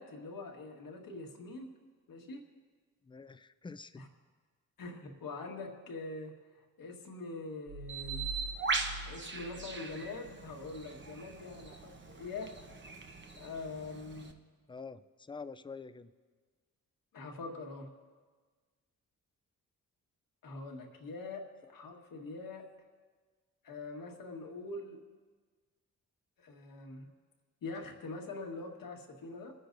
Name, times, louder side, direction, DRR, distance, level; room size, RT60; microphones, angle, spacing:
voice 1, 0.0-1.6 2.1-2.4 4.0-4.1 4.8-6.3 6.8-8.2 9.0-12.5 13.4-14.4 17.1-17.9 20.4-22.7 23.6-25.0 26.4-27.1 27.6-29.5, left 3 dB, 80° left, 1 dB, 1.7 m, -43 dB
voice 2, 3.0-4.0 14.7-16.1, left 4 dB, 15° left, 13 dB, 0.4 m, -46 dB
sound 1, 7.7-10.4, right 2 dB, 60° right, 0.8 m, -45 dB
Bird, 7.9-14.3, right 4 dB, 35° right, 1.0 m, -40 dB
27.5 x 9.9 x 2.7 m, 1.4 s
cardioid pair, 80°, 33 cm